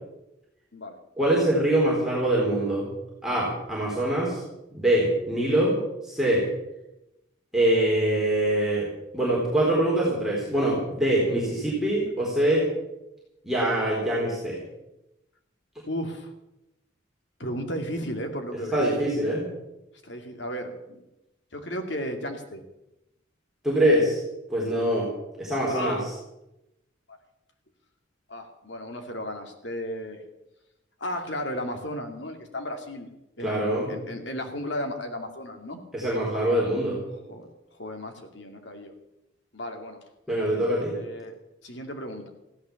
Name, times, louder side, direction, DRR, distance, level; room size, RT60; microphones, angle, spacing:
voice 1, 1.2-2.9 3.2-4.4 4.7-5.8 6.0-6.4 7.5-8.9 9.1-12.7 13.4-14.6 18.7-19.5 23.6-24.2 24.5-25.1 25.4-26.0 33.4-33.9 35.9-37.0 40.3-40.9, right 1 dB, ahead, -6 dB, 4.1 m, -24 dB
voice 2, 15.9-16.3 17.4-18.9 20.0-21.0 21.5-22.6 25.7-26.1 28.3-30.2 31.0-33.1 33.4-35.8 37.3-37.5 37.8-38.9 39.5-40.0 40.9-41.3 41.6-42.3, equal, 60° left, 4 dB, 2.5 m, -34 dB
15.5 x 11.5 x 7.1 m, 0.92 s
head